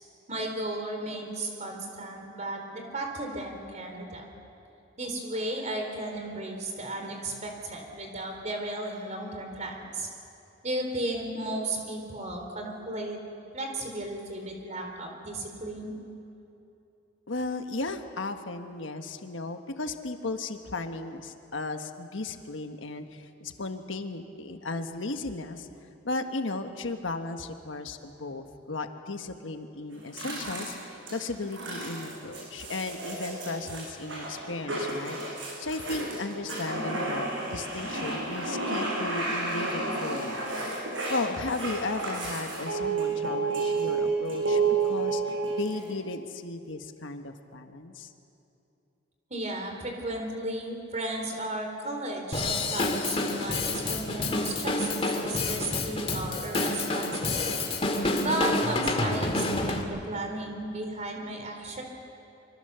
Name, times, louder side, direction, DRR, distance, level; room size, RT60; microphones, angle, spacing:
voice 1, 0.3-4.2 5.0-10.1 10.6-13.2 13.5-15.9 49.3-57.5 58.2-61.8, right 1 dB, 35° right, 3 dB, 3.7 m, -34 dB
voice 2, 17.3-25.7 26.0-35.2 35.6-40.4 41.1-48.1, left 3 dB, 75° left, 6 dB, 1.3 m, -35 dB
sound 1, 29.9-45.9, right 3 dB, 70° right, 7.3 m, -31 dB
Drum kit / Drum, 52.3-59.8, left 2 dB, 30° left, 2.1 m, -28 dB
25.0 x 24.5 x 6.9 m, 2.8 s
head